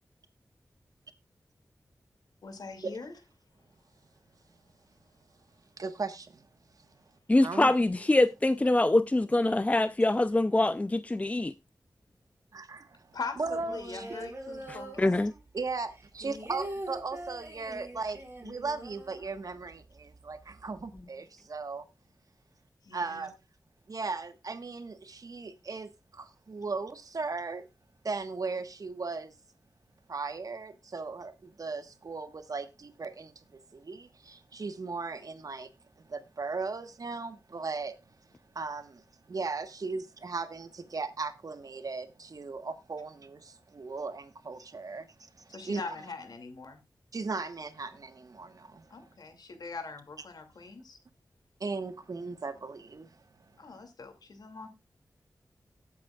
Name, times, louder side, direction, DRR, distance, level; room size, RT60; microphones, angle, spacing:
voice 1, 2.4-3.1 13.1-15.1 22.8-23.3 45.5-46.8 48.9-51.0 53.6-54.7, left 4 dB, 75° left, 2.4 m, -42 dB
voice 2, 5.8-6.4 7.4-7.7 12.5-14.3 15.5-21.8 22.9-23.3 23.9-27.7 28.0-29.3 30.1-33.4 33.7-35.7 36.1-37.9 38.5-45.8 47.1-49.1 51.6-53.1, right 4 dB, 60° right, 1.3 m, -37 dB
voice 3, 7.3-11.5 14.7-15.3, left 2 dB, 20° left, 0.5 m, -24 dB
sound 1, 13.4-15.6 15.9-19.8 20.1-20.2 20.5-21.0, right 1 dB, 35° right, 5.1 m, -43 dB
18.5 x 8.4 x 2.3 m
wide cardioid pair, 75°, 7 cm